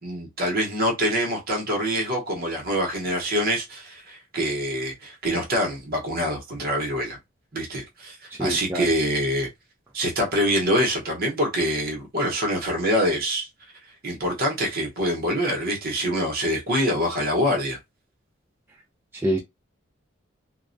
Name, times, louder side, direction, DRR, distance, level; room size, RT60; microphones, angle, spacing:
voice 1, 0.0-7.2 7.5-9.5 9.9-13.5 14.0-17.8, equal, 50° right, 0.9 m, -25 dB
voice 2, 8.3-8.9 19.1-19.4, equal, 10° right, 0.4 m, -26 dB
2.3 x 2.1 x 2.5 m
head